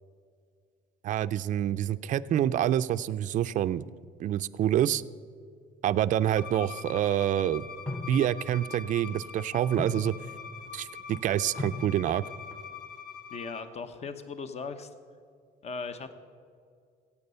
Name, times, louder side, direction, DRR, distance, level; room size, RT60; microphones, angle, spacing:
voice 1, 1.0-3.8 4.2-5.0 5.8-7.7 8.1-10.2 10.7-12.2, right 11 dB, 50° right, 13 dB, 0.4 m, -27 dB
Bowed string instrument, 6.4-13.6, left 7 dB, 75° left, 1.2 m, -43 dB
sound 1, 7.9-8.5 9.5-10.4 11.1-11.2 11.5-12.5, left 2 dB, 10° left, 1.0 m, -38 dB
voice 2, 13.3-14.9 15.6-16.1, left 4 dB, 40° left, 10 dB, 1.0 m, -38 dB
15.5 x 8.6 x 5.5 m, 2.2 s
cardioid pair, 110°, 17 cm